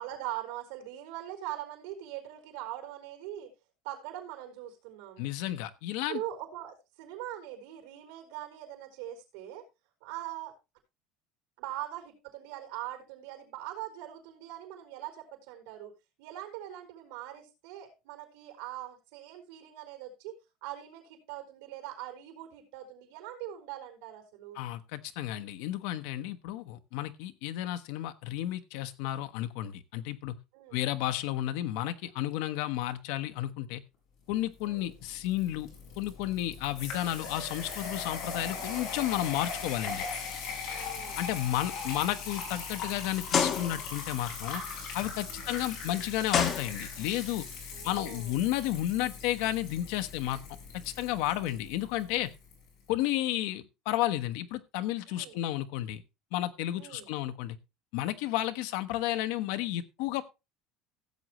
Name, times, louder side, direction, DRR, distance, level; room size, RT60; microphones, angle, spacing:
voice 1, 0.0-3.5 3.8-5.3 6.1-9.6 10.0-10.5 11.6-15.9 16.2-24.6 30.5-30.9 34.6-34.9 40.7-41.2 41.8-42.0 45.3-45.6 47.7-48.3 51.3-51.6 55.1-55.4 56.8-57.1, right 13 dB, 85° right, 3 dB, 4.3 m, -42 dB
voice 2, 5.2-6.2 24.5-30.3 30.7-33.8 34.3-35.7 36.0-40.0 41.2-44.6 44.9-47.4 47.8-50.4 50.7-52.3 52.9-56.0 56.3-57.6 57.9-60.2, left 14 dB, 65° left, 9 dB, 1.0 m, -32 dB
sound 1, 34.6-52.6, left 5 dB, 45° left, 5.3 m, -40 dB
sound 2, 40.2-40.5 41.0-41.1 41.8-41.9 43.3-44.0 45.5-45.6 46.3-47.2, left 7 dB, 25° left, 1.2 m, -29 dB
16.0 x 7.7 x 3.0 m, 0.26 s
cardioid pair, 180°, 0 cm